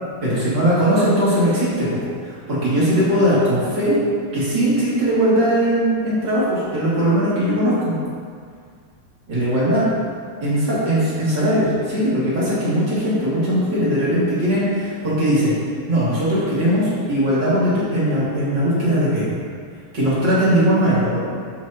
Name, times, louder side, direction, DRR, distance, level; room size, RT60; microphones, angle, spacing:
voice 1, 0.2-3.9 4.3-7.9 9.3-9.9 10.4-15.5 15.9-19.4 19.9-21.2, equal, 35° right, -10 dB, 2.0 m, -19 dB
12.5 x 6.3 x 2.8 m, 2.1 s
omnidirectional pair, 4.9 m